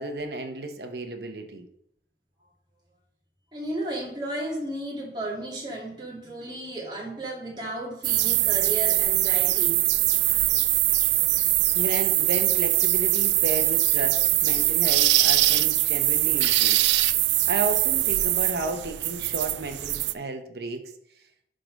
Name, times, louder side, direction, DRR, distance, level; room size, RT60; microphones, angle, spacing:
voice 1, 0.0-1.6 11.7-16.8 17.5-20.9, right 2 dB, 65° right, 5 dB, 1.1 m, -32 dB
voice 2, 3.5-9.8, right 1 dB, 25° right, -3 dB, 2.3 m, -34 dB
sound 1, 8.0-20.1, right 16 dB, 80° right, 0.4 m, -22 dB
11.0 x 3.9 x 5.2 m, 0.74 s
head